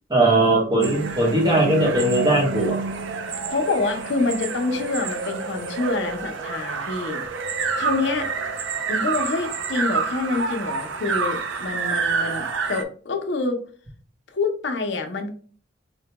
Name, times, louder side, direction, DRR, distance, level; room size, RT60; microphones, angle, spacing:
voice 1, 0.1-2.8, right 2 dB, 20° right, 0 dB, 0.8 m, -19 dB
sound 1, 0.8-12.8, right 5 dB, 75° right, 0.5 m, -28 dB
voice 2, 3.5-7.2 7.8-8.3 8.9-13.6 14.3-15.3, left 3 dB, 65° left, 5 dB, 0.6 m, -26 dB
4.3 x 2.2 x 2.8 m, 0.42 s
head